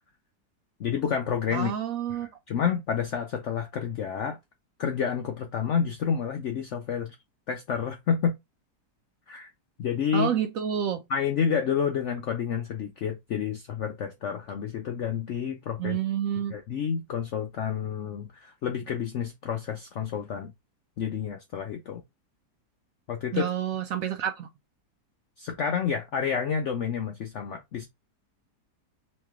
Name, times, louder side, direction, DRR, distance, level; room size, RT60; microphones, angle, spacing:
voice 1, 0.8-1.7 2.1-4.4 4.8-7.1 7.5-8.3 9.3-9.5 9.8-10.3 11.1-16.0 16.5-20.5 21.0-22.0 23.1-23.5 25.4-27.9, left 7 dB, 70° left, 0.6 m, -29 dB
voice 2, 1.5-2.3 10.1-11.0 15.8-16.6 23.3-24.5, right 9 dB, 70° right, 0.9 m, -29 dB
3.2 x 3.1 x 3.5 m
omnidirectional pair, 1.8 m